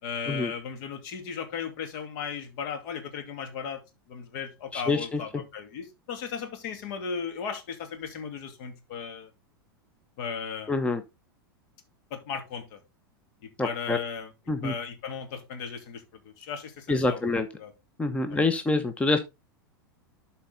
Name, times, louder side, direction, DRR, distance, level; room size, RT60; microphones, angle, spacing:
voice 1, 0.0-3.8 4.1-9.3 10.2-10.7 12.1-12.8 13.4-14.3 14.6-16.0 16.4-17.2 17.6-17.7 18.3-18.4, left 6 dB, 55° left, 2.5 m, -36 dB
voice 2, 4.7-5.4 10.7-11.0 13.6-14.0 14.5-14.7 16.9-17.5 18.0-19.2, left 3 dB, 10° left, 1.0 m, -26 dB
12.0 x 4.4 x 3.8 m
figure-of-eight pair, 90°, 12 cm